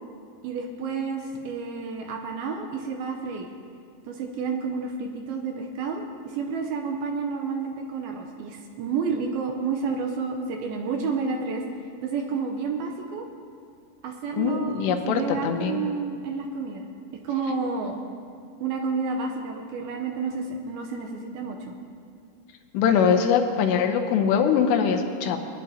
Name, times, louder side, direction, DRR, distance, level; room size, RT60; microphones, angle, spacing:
voice 1, 0.4-3.5 4.0-11.7 12.0-13.2 14.0-16.9 17.2-18.0 18.6-21.8, right 5 dB, 80° right, 2 dB, 2.4 m, -30 dB
voice 2, 14.4-15.8 22.7-25.4, left 7 dB, 85° left, 4 dB, 3.0 m, -22 dB
21.0 x 10.5 x 2.8 m, 2.3 s
omnidirectional pair, 4.8 m